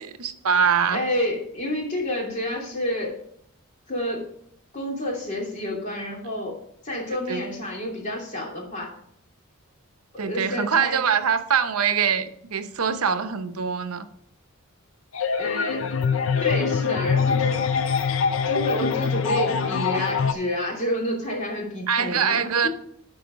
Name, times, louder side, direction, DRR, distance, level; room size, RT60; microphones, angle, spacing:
voice 1, 0.0-1.0 7.3-7.4 10.2-14.1 21.9-22.7, right 6 dB, 80° right, 0.8 m, -23 dB
voice 2, 0.9-3.2 3.9-4.3 4.7-6.6 6.8-8.9 10.1-11.0 15.4-15.9 16.4-17.6 18.4-22.7, left 1 dB, 35° left, 2.8 m, -29 dB
sound 1, 15.1-20.3, left 6 dB, 60° left, 0.5 m, -24 dB
12.0 x 4.8 x 5.2 m
head